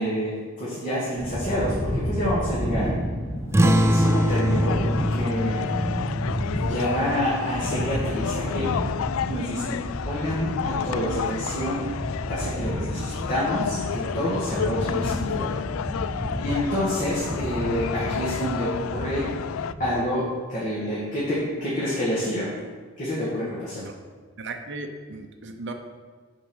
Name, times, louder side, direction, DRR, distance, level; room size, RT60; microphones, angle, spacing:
voice 1, 0.0-2.9 3.6-4.8 5.1-5.6 6.6-8.7 9.2-9.8 10.1-11.8 12.3-15.6 16.0-19.3 19.8-22.5 23.0-23.8, equal, 40° left, -8 dB, 2.0 m, -28 dB
sound 1, 1.2-19.9, equal, 15° left, 1.1 m, -31 dB
sound 2, 3.5-8.6, equal, 15° right, 0.4 m, -24 dB
sound 3, 4.0-19.7, left 8 dB, 80° left, 0.3 m, -32 dB
voice 2, 24.4-25.7, right 3 dB, 60° right, 4 dB, 0.7 m, -36 dB
7.0 x 5.3 x 6.4 m, 1.5 s
head